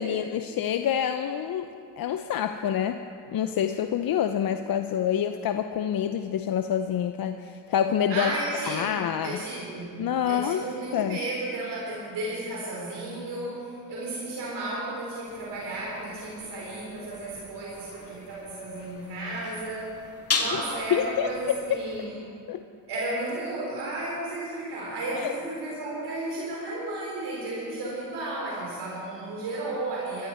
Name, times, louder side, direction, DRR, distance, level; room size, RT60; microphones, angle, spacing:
voice 1, 0.0-3.0 3.3-8.3 8.7-9.4 10.0-10.6 10.9-11.2 20.5-20.6 20.9-21.8 22.5-22.6 25.1-25.3, left 9 dB, 55° left, 8 dB, 0.7 m, -27 dB
voice 2, 8.1-10.0 10.2-19.9 20.3-22.2 22.9-30.3, right 2 dB, 70° right, -4 dB, 4.0 m, -33 dB
sound 1, 15.3-22.1, left 4 dB, 35° left, 2.3 m, -37 dB
21.5 x 14.0 x 4.4 m, 2.4 s
cardioid pair, 85°, 41 cm